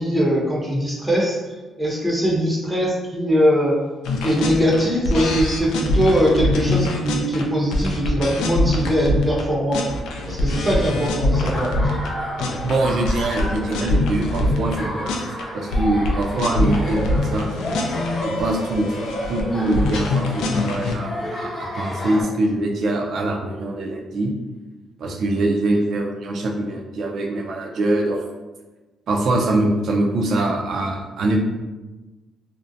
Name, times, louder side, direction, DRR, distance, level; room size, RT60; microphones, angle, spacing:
voice 1, 0.0-3.8 4.2-9.8 10.2-12.0, equal, 15° right, -3 dB, 0.6 m, -21 dB
sound 1, 4.1-9.4 9.7-12.1 12.4-14.8 15.1-15.4 15.7-21.0, left 1 dB, 90° left, 0.3 m, -23 dB
Laughter, 11.3-22.2, equal, 35° left, 0.7 m, -31 dB
voice 2, 12.6-17.5 18.2-18.9 19.3-24.3 25.0-28.3 29.1-31.4, right 2 dB, 65° right, 1 dB, 0.4 m, -23 dB
2.6 x 2.0 x 2.5 m, 1.2 s
cardioid pair, 90°, 0 cm